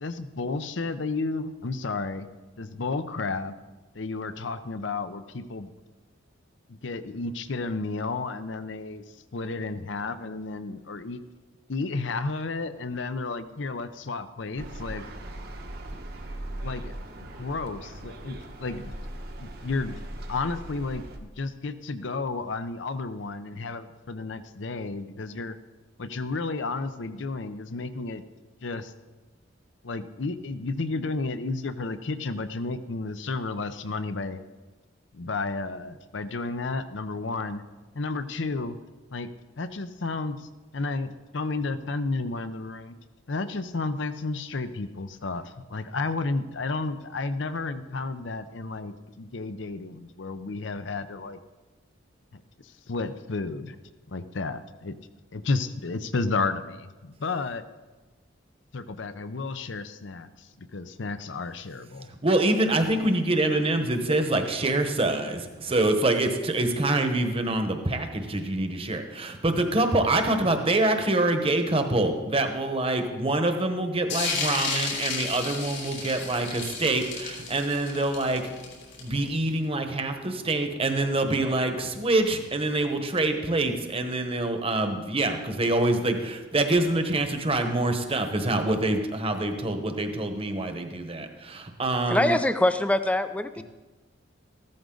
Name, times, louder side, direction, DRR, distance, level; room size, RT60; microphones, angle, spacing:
voice 1, 0.0-2.3 2.6-3.5 3.9-5.7 6.7-9.0 9.3-11.2 11.7-15.0 15.9-16.0 16.6-18.9 19.4-20.0 20.3-25.6 26.0-28.2 28.6-28.9 29.8-34.4 35.1-37.6 37.9-38.8 39.1-39.3 39.6-43.0 43.3-51.4 52.3-53.8 54.1-55.0 55.3-57.6 58.7-62.1, left 3 dB, 65° left, 12 dB, 0.7 m, -32 dB
sound 1, 14.6-21.2, right 1 dB, 55° right, 1.2 m, -39 dB
voice 2, 62.2-78.4 79.0-92.4, right 2 dB, 30° right, 6 dB, 1.2 m, -25 dB
sound 2, 74.1-79.4, left 4 dB, 85° left, 4.6 m, -32 dB
voice 3, 92.1-93.6, left 1 dB, 5° left, 10 dB, 0.5 m, -24 dB
14.5 x 13.0 x 3.9 m, 1.2 s
head